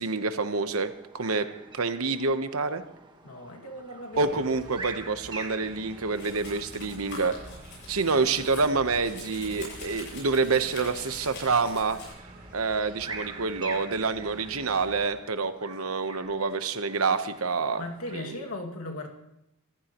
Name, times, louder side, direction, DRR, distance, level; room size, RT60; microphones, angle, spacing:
voice 1, 0.0-1.5 1.8-2.8 4.2-7.3 7.9-12.0 12.5-17.8 18.1-18.3, right 4 dB, 75° right, 9 dB, 1.1 m, -27 dB
sound 1, 0.6-18.3, right 3 dB, 20° right, 1.4 m, -46 dB
voice 2, 3.2-4.4 17.8-19.1, left 1 dB, 85° left, 1 dB, 2.2 m, -37 dB
sound 2, 4.1-15.1, right 1 dB, 40° right, 3.1 m, -49 dB
Domestic sounds home sounds, 6.1-12.1, left 3 dB, 55° left, 7.9 m, -45 dB
25.0 x 15.0 x 3.1 m, 0.84 s
head